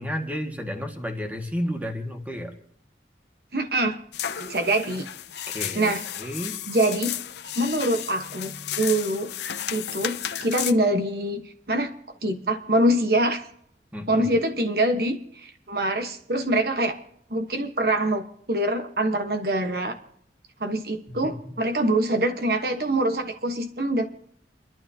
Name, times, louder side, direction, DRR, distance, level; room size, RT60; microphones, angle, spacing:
voice 1, 0.0-2.5 5.5-6.6 13.9-14.3 21.2-21.6, equal, 10° right, 3 dB, 1.8 m, -32 dB
voice 2, 3.5-4.0 4.4-5.1 5.7-6.1 6.7-7.2 7.6-9.3 9.7-11.4 11.7-11.9 12.2-13.4 14.1-17.0 17.3-20.0 20.6-24.0, right 1 dB, 55° right, 6 dB, 1.2 m, -24 dB
sound 1, 4.1-10.7, left 10 dB, 75° left, 0.7 m, -33 dB
30.0 x 12.0 x 2.8 m, 0.67 s
head